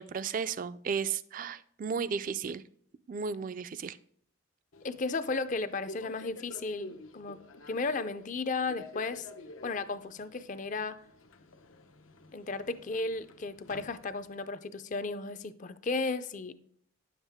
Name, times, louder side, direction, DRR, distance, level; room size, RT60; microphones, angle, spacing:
voice 1, 0.0-2.6 3.1-4.0, right 6 dB, 40° right, 0.3 m, -34 dB
Subway metro underground, 4.7-14.5, left 1 dB, 80° left, 0.8 m, -50 dB
voice 2, 4.8-7.4 7.7-9.3 9.6-11.0 12.3-16.6, left 3 dB, 35° left, 0.4 m, -34 dB
10.0 x 7.3 x 3.5 m
head